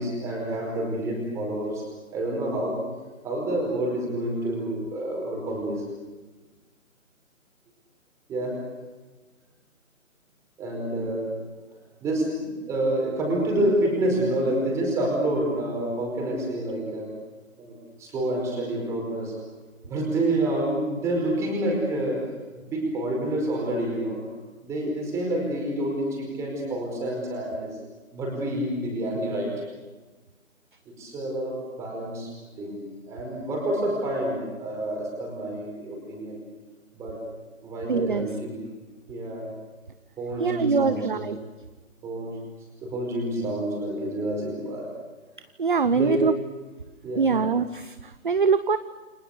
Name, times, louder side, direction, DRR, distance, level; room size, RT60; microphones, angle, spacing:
voice 1, 0.0-1.9 2.1-2.8 3.2-5.8 8.3-8.7 10.6-11.4 12.0-17.1 17.6-19.4 19.8-24.2 24.6-27.8 28.1-29.6 30.8-32.3 32.6-36.4 36.9-37.2 37.6-38.6 39.1-39.5 40.2-41.3 42.0-42.4 42.8-44.9 45.8-46.3 47.0-47.4, right 1 dB, 5° right, 0 dB, 4.9 m, -28 dB
voice 2, 37.9-38.3 40.4-41.4 45.6-46.3 47.2-48.8, right 5 dB, 35° right, 12 dB, 0.8 m, -23 dB
29.5 x 26.5 x 6.7 m, 1.3 s
hypercardioid pair, 170°, 42 cm